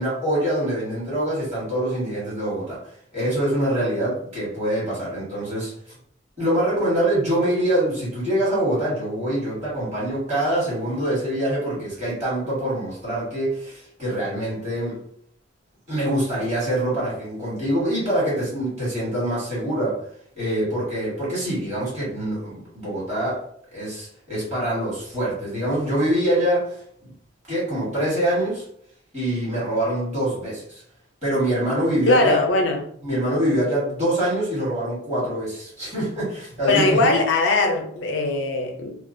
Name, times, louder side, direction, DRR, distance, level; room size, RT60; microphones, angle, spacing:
voice 1, 0.0-2.8 3.1-5.7 6.4-15.0 15.9-20.0 20.3-23.4 23.7-26.8 27.0-27.1 27.5-28.6 29.1-30.8 31.2-32.4 33.0-37.0, right 1 dB, 35° right, 1.3 m, -24 dB
voice 2, 32.1-32.8 36.6-39.0, left 2 dB, 80° left, 0.5 m, -20 dB
2.3 x 2.2 x 2.5 m
head